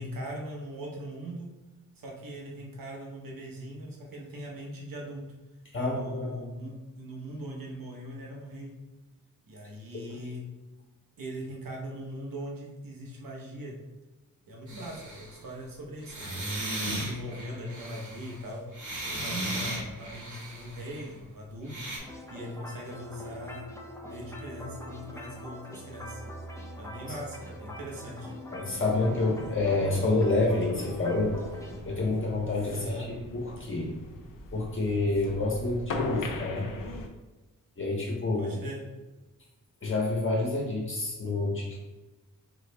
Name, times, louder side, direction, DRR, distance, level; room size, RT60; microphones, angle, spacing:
voice 1, 0.0-1.5 2.0-5.2 5.8-8.7 9.5-10.4 11.2-13.7 14.5-16.4 16.8-18.6 19.0-23.7 24.0-26.2 26.8-28.3 32.7-33.1 38.4-38.8, equal, 80° right, -2 dB, 1.2 m, -40 dB
voice 2, 5.7-6.4 9.9-10.0 28.5-31.3 31.8-32.8 33.3-33.9 34.5-36.6 37.8-38.5 39.8-41.8, left 2 dB, 35° left, -2 dB, 1.3 m, -28 dB
sound 1, 14.7-15.4 16.0-21.0 21.7-22.0, right 1 dB, 60° right, 1.3 m, -36 dB
sound 2, 22.0-31.8, equal, 10° left, 0.6 m, -43 dB
sound 3, 28.7-37.1, left 3 dB, 75° left, 0.6 m, -40 dB
4.8 x 3.2 x 3.4 m, 1.1 s
wide cardioid pair, 135°, 34 cm